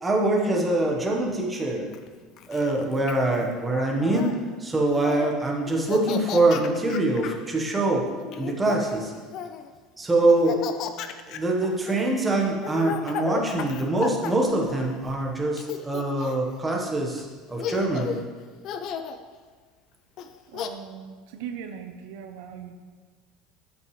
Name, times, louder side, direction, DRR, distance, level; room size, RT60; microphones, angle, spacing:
voice 1, 0.0-1.9 2.5-4.3 4.6-8.1 8.4-9.1 10.0-10.6 11.3-18.1, right 2 dB, 10° right, -1 dB, 1.2 m, -24 dB
Laughter, 1.9-4.3 4.9-5.3 5.7-7.4 8.2-9.7 10.3-15.2 15.6-16.5 17.2-17.3 17.6-18.2 18.6-19.2 20.2-20.7, left 7 dB, 45° left, 0.5 m, -34 dB
voice 2, 20.5-22.7, right 8 dB, 75° right, 7 dB, 0.7 m, -39 dB
13.5 x 6.0 x 3.2 m, 1.5 s
cardioid pair, 165°, 0 cm